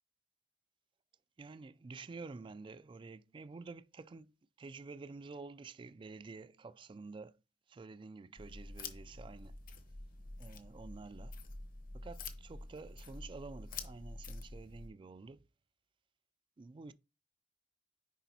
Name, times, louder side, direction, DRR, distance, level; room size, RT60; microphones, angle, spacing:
voice 1, 1.4-4.3 4.6-7.4 7.7-9.6 10.4-11.3 11.9-15.5 16.6-16.9, right 3 dB, 30° right, 0.3 m, -49 dB
sound 1, 8.4-14.9, left 3 dB, 50° left, 0.9 m, -47 dB
10.0 x 3.9 x 2.8 m
head